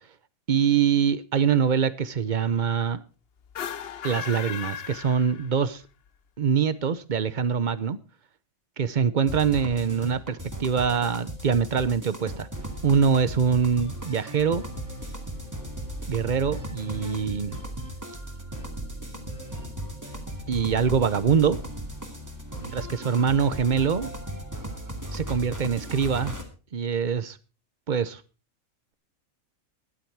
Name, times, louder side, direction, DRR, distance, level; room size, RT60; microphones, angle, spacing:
voice 1, 0.5-3.0 4.0-5.8 6.4-8.0 8.8-12.5 12.8-14.6 16.1-17.6 20.5-21.6 22.7-24.1 25.1-26.3 26.7-27.4 27.9-28.2, right 7 dB, 40° right, 0.8 m, -24 dB
sound 1, 3.4-5.8, left 8 dB, 55° left, 0.9 m, -36 dB
sound 2, 9.3-26.4, right 1 dB, 15° right, 2.4 m, -36 dB
13.0 x 11.5 x 4.7 m
omnidirectional pair, 1.4 m